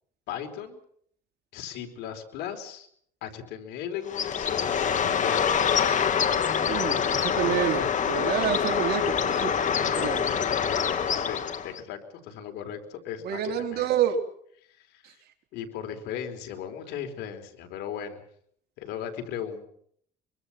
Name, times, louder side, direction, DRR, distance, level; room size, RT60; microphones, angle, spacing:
voice 1, 0.3-0.8 1.5-2.9 3.2-5.5 11.1-12.0 12.2-13.9 14.9-15.2 15.5-18.2 18.8-19.7, left 9 dB, 90° left, 6 dB, 4.4 m, -37 dB
Bird, 4.1-11.8, left 7 dB, 45° left, 2.3 m, -25 dB
voice 2, 6.7-9.5 9.8-10.3 13.2-14.2, right 8 dB, 70° right, 4 dB, 3.9 m, -28 dB
24.5 x 24.0 x 5.9 m, 0.64 s
cardioid pair, 110°, 17 cm